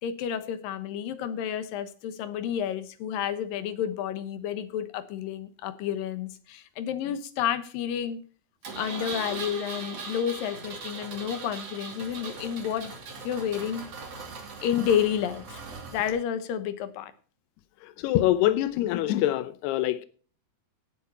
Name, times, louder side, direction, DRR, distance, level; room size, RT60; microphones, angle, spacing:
voice 1, 0.0-8.2 8.8-12.9 13.2-13.8 14.6-15.6 15.9-17.1, left 9 dB, 70° left, 2.6 m, -30 dB
Engine, 8.6-16.1, right 4 dB, 40° right, 3.3 m, -39 dB
voice 2, 17.8-20.1, left 14 dB, 90° left, 2.8 m, -25 dB
17.0 x 8.2 x 4.2 m
omnidirectional pair, 4.6 m